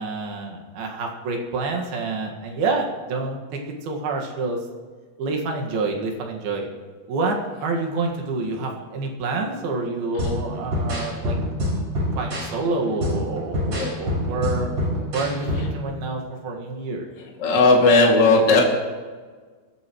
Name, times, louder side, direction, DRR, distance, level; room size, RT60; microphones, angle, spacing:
voice 1, 0.0-4.6 5.2-6.7 7.1-11.4 12.2-14.7 15.1-17.1, right 3 dB, 65° right, 1 dB, 3.4 m, -27 dB
sound 1, 10.2-15.8, left 1 dB, 35° right, 5.4 m, -26 dB
voice 2, 17.4-18.6, left 3 dB, 30° left, -1 dB, 2.2 m, -16 dB
22.0 x 15.0 x 3.1 m, 1.5 s
omnidirectional pair, 5.0 m